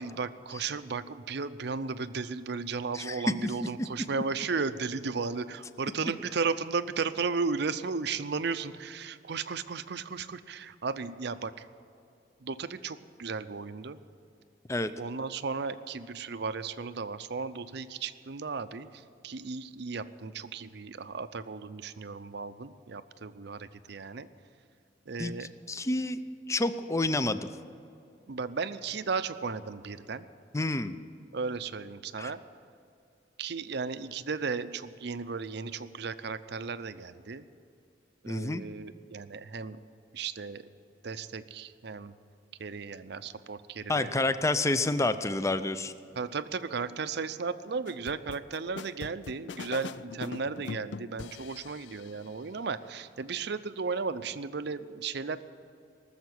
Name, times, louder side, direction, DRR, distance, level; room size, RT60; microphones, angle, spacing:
voice 1, 0.0-11.5 12.4-14.0 15.0-18.9 19.2-24.3 25.1-25.5 28.3-30.3 31.3-32.4 33.4-37.4 38.2-39.8 40.1-40.7 41.0-42.1 42.6-44.1 46.2-55.4, right 4 dB, 65° right, 12 dB, 0.6 m, -35 dB
voice 2, 2.9-3.5 3.8-3.9 14.7-14.9 25.2-26.2 26.5-27.5 30.5-31.0 32.2-32.3 38.3-38.6 43.9-45.9, left 2 dB, 15° left, 12 dB, 0.5 m, -29 dB
sound 1, 47.9-52.2, left 5 dB, 70° left, 0.4 m, -42 dB
19.0 x 7.3 x 9.5 m, 2.6 s
head